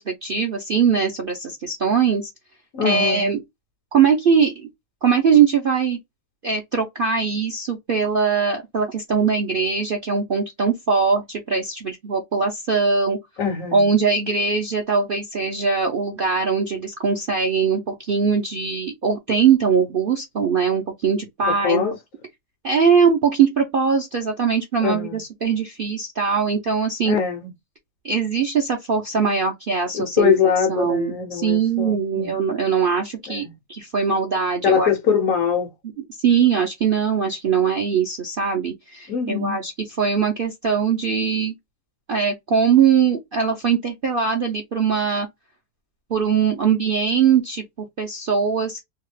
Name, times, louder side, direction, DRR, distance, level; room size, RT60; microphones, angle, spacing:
voice 1, 0.0-2.3 2.8-3.4 3.9-4.7 5.0-6.0 6.4-13.2 13.7-21.9 22.6-27.2 28.0-34.9 36.2-39.7 40.0-41.5 42.1-45.3 46.1-48.8, right 6 dB, 60° right, 0.6 m, -21 dB
voice 2, 2.7-3.4 13.4-13.9 21.5-22.0 24.8-25.2 27.1-27.5 29.9-32.3 33.3-33.5 34.6-35.7 39.1-39.6, left 7 dB, 65° left, 0.9 m, -22 dB
2.8 x 2.3 x 3.1 m
omnidirectional pair, 1.7 m